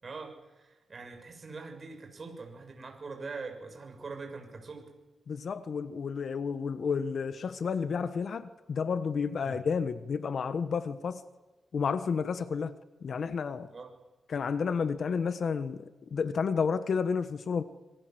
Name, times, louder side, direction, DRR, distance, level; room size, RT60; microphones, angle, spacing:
voice 1, 0.0-4.9 9.4-9.6 13.7-13.9, right 4 dB, 35° right, 4 dB, 7.0 m, -43 dB
voice 2, 5.3-11.2 11.7-13.7 14.3-17.6, left 5 dB, 55° left, 12 dB, 1.3 m, -31 dB
26.5 x 24.0 x 7.9 m, 1.2 s
wide cardioid pair, 130°, 0 cm